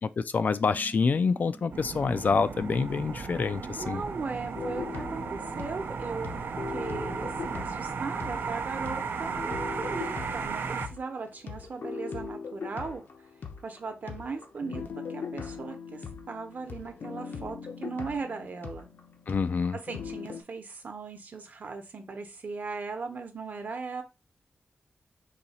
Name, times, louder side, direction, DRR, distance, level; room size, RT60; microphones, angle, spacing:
voice 1, 0.2-4.0 19.3-19.8, left 5 dB, 50° left, 0.3 m, -27 dB
sound 1, 0.7-5.7, right 2 dB, 10° right, 0.5 m, -52 dB
sound 2, 1.7-10.9, right 5 dB, 75° right, 0.6 m, -35 dB
voice 2, 3.8-6.3 6.7-13.0 13.6-18.9 19.9-24.0, right 4 dB, 50° right, 0.9 m, -38 dB
sound 3, 4.5-8.6 8.9-20.4, left 5 dB, 65° left, 0.8 m, -40 dB
4.1 x 2.8 x 4.1 m
wide cardioid pair, 130°, 4 cm